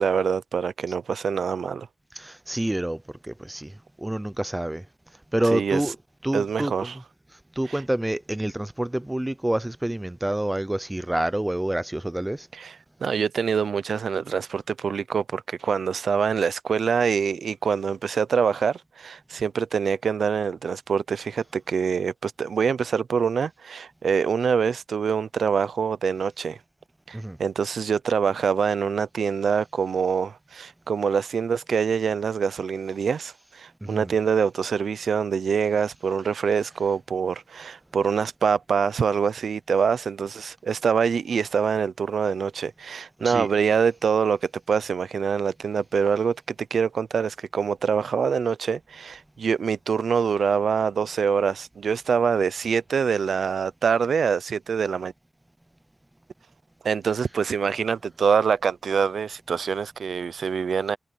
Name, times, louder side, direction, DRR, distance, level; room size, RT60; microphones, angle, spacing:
voice 1, 0.0-1.9 5.5-5.8 6.3-7.0 7.7-7.8 12.5-26.6 27.1-46.4 46.7-55.1 56.8-61.0, right 6 dB, 85° right, 0.6 m, -25 dB
voice 2, 2.2-3.0 3.3-3.7 4.0-4.8 5.3-6.0 6.2-6.9 7.6-12.5 27.1-27.4 33.8-34.1 43.2-43.5, right 1 dB, 10° right, 0.6 m, -27 dB
wide cardioid pair, 175°, 0 cm